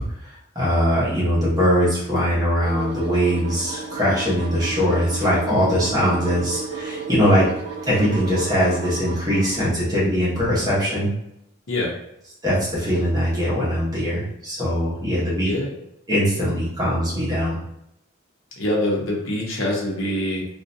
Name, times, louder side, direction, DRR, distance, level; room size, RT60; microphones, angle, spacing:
voice 1, 0.2-7.5 7.9-11.1 12.4-15.5 16.1-17.6, equal, 20° right, -8 dB, 0.9 m, -21 dB
sound 1, 2.6-9.6, right 4 dB, 50° right, 0.5 m, -33 dB
voice 2, 15.4-15.8 18.6-20.5, left 1 dB, 75° left, -2 dB, 0.7 m, -24 dB
2.5 x 2.1 x 2.6 m, 0.79 s
head